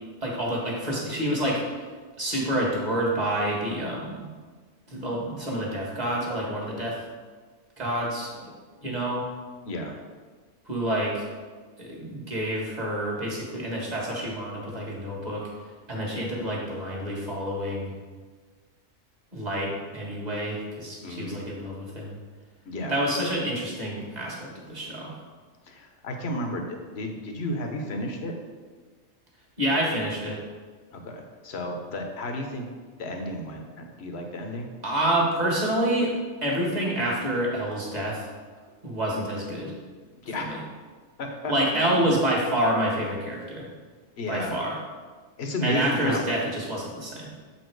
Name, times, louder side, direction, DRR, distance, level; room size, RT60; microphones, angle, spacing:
voice 1, 0.2-1.9 2.2-4.3 4.9-7.0 7.8-8.5 8.8-9.3 10.7-11.3 11.8-15.5 15.9-17.9 19.3-22.2 22.9-25.2 29.6-30.4 34.8-36.1 36.4-38.3 38.8-39.7 40.4-40.6 41.5-43.7 44.3-44.8 45.6-47.3, right 1 dB, 35° right, -3 dB, 1.7 m, -28 dB
voice 2, 9.7-10.0 21.0-21.4 22.7-23.0 25.6-28.4 30.9-32.7 33.0-34.7 40.2-40.6 41.2-42.1 44.2-44.6 45.4-46.2, left 1 dB, 60° left, 3 dB, 1.2 m, -32 dB
7.2 x 4.5 x 4.6 m, 1.4 s
omnidirectional pair, 1.3 m